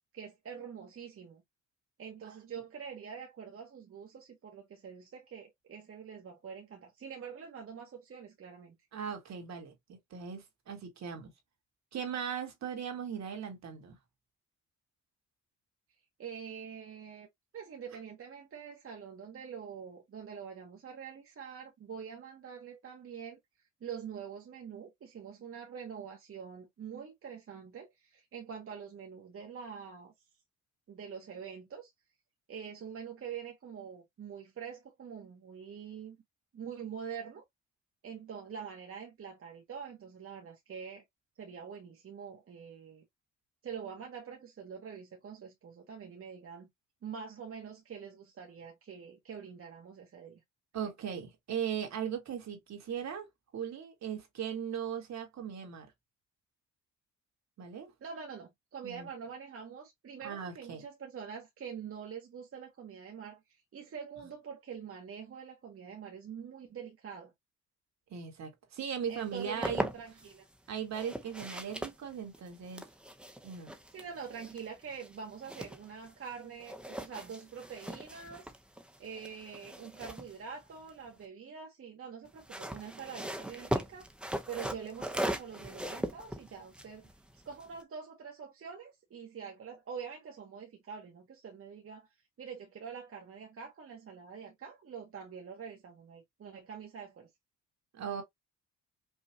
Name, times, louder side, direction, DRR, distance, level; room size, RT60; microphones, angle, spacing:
voice 1, 0.1-1.4 2.0-8.8 16.2-17.3 17.5-23.4 23.8-30.1 30.9-31.9 32.5-36.2 36.5-37.4 38.0-41.0 41.4-43.0 43.6-46.7 47.0-50.4 50.8-50.9 58.0-67.3 69.1-70.5 73.9-78.5 79.0-84.1 84.5-92.1 92.4-97.3, right 7 dB, 45° right, 1.4 m, -45 dB
voice 2, 8.9-11.3 11.9-14.0 50.7-53.3 53.5-55.9 57.6-57.9 58.8-59.1 60.2-60.8 68.1-69.9 70.7-72.8 73.4-73.7 97.9-98.2, right 8 dB, 65° right, 2.1 m, -38 dB
sound 1, 69.2-70.3 70.9-76.3 76.6-81.2 82.2-87.8, right 1 dB, 5° right, 0.9 m, -40 dB
5.5 x 2.5 x 2.9 m
cardioid pair, 90°, 30 cm